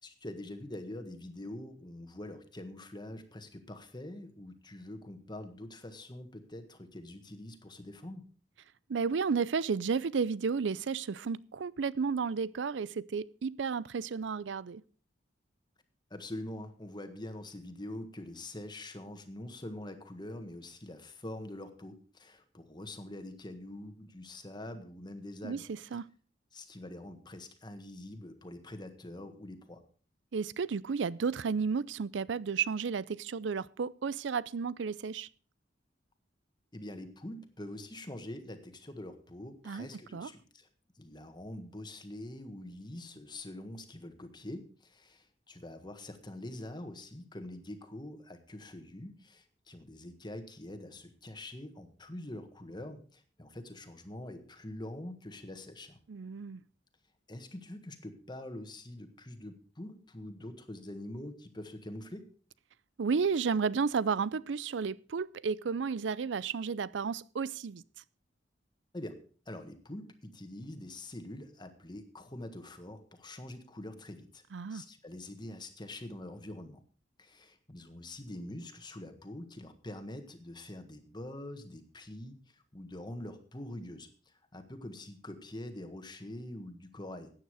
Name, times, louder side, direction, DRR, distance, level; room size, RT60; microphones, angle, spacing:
voice 1, 0.0-8.3 16.1-25.7 26.5-29.8 36.7-40.7 40.9-56.0 57.3-62.3 68.9-69.2 69.4-74.4 74.7-76.8 77.2-87.3, left 1 dB, 25° left, 1.6 m, -45 dB
voice 2, 8.9-14.8 25.4-26.1 30.3-35.3 39.7-39.9 40.1-40.3 56.1-56.6 63.0-67.8 74.5-74.8, right 5 dB, 75° right, 0.5 m, -32 dB
14.5 x 9.4 x 4.8 m
head